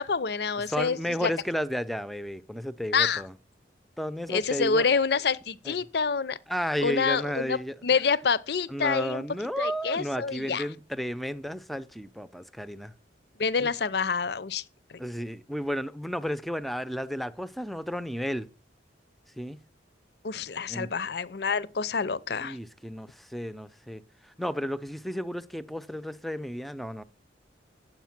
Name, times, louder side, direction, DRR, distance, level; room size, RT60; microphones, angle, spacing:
voice 1, 0.0-1.3 2.9-3.2 4.3-6.4 6.8-9.2 9.6-10.6 13.4-14.6 20.2-22.6, left 5 dB, 60° left, 0.6 m, -27 dB
voice 2, 0.7-3.3 4.0-4.9 5.7-5.8 6.5-7.8 8.7-12.9 13.6-13.7 15.0-18.5 19.4-19.6 20.7-20.9 22.4-24.0 24.4-27.0, equal, ahead, 0.5 m, -33 dB
10.5 x 7.8 x 5.9 m
head